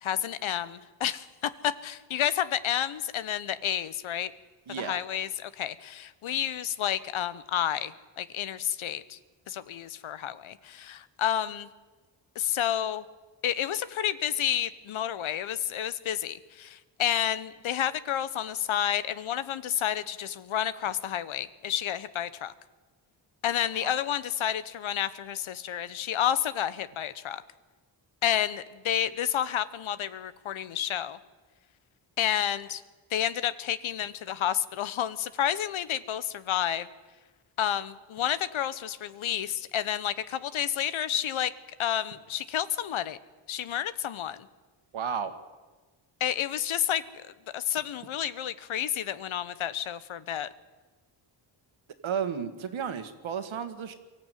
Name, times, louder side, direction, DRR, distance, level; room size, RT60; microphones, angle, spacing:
voice 1, 0.0-4.3 4.8-9.2 9.5-11.7 12.3-13.0 13.4-22.5 23.4-27.4 28.2-31.2 32.2-32.8 33.1-36.9 37.6-41.5 41.8-43.2 43.5-44.4 46.2-47.0 47.5-50.5, left 10 dB, 80° left, 15 dB, 1.0 m, -30 dB
voice 2, 4.7-5.0 23.8-23.9 44.9-45.3 52.0-53.9, right 7 dB, 75° right, 8 dB, 1.9 m, -33 dB
23.5 x 14.0 x 9.2 m, 1.3 s
cardioid pair, 95°, 48 cm